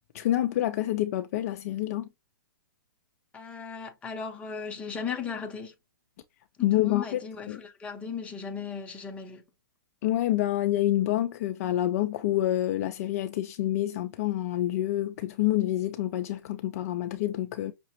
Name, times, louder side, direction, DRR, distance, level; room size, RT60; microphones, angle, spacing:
voice 1, 0.1-2.1 6.6-7.2 7.5-7.6 10.0-17.7, left 13 dB, 40° left, 0.3 m, -27 dB
voice 2, 3.3-5.7 6.6-9.4, left 6 dB, 10° left, 0.7 m, -37 dB
5.7 x 2.0 x 2.8 m
hypercardioid pair, 145°, 12 cm